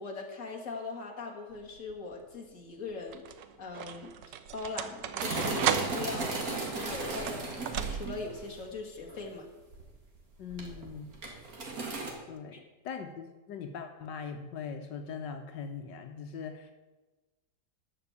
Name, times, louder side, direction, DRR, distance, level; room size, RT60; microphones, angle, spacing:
voice 1, 0.0-4.1 4.5-9.5 12.5-12.7, left 3 dB, 45° left, 0 dB, 2.4 m, -41 dB
sound 1, 1.6-2.0 2.9-8.4, right 9 dB, 85° right, 1.5 m, -36 dB
sound 2, 5.2-8.6 9.0-9.2 9.7-10.2 10.5-12.1, right 3 dB, 55° right, 2.5 m, -36 dB
voice 2, 10.4-11.2 12.3-16.7, left 6 dB, 85° left, 6 dB, 1.6 m, -41 dB
13.0 x 6.1 x 8.4 m, 1.2 s
omnidirectional pair, 1.9 m